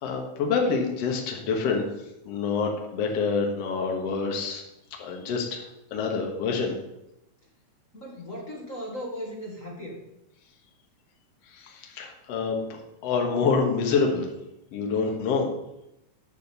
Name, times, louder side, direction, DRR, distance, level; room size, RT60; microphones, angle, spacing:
voice 1, 0.0-1.8 2.3-4.6 5.0-5.6 5.9-6.7 11.5-14.3 14.7-15.5, left 5 dB, 60° left, 1 dB, 2.2 m, -27 dB
voice 2, 7.9-10.0, equal, 35° left, -2 dB, 1.5 m, -37 dB
9.1 x 5.2 x 6.9 m, 0.87 s
omnidirectional pair, 3.6 m